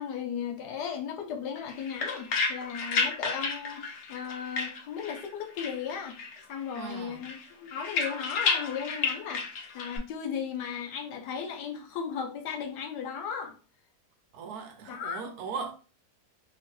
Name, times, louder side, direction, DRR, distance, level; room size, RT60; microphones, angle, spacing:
voice 1, 0.0-6.1 6.5-13.5 14.9-15.3, left 7 dB, 85° left, 1.2 m, -36 dB
sound 1, 1.6-5.3 5.6-6.4 6.7-10.0, left 4 dB, 60° left, 0.7 m, -32 dB
voice 2, 6.7-7.2 14.3-15.7, right 5 dB, 75° right, 1.1 m, -38 dB
2.9 x 2.6 x 3.0 m
omnidirectional pair, 1.7 m